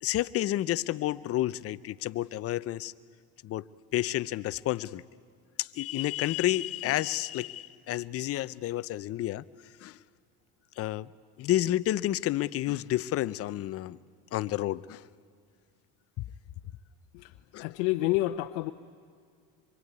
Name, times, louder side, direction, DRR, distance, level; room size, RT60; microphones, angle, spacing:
voice 1, 0.0-2.9 3.4-3.6 3.9-5.0 5.6-9.4 9.8-10.0 10.8-11.1 11.4-14.0 14.3-15.0 17.5-17.7, left 14 dB, 40° left, 0.6 m, -30 dB
voice 2, 17.6-18.7, left 17 dB, 90° left, 0.9 m, -28 dB
26.0 x 23.5 x 9.5 m
cardioid pair, 140°, 35 cm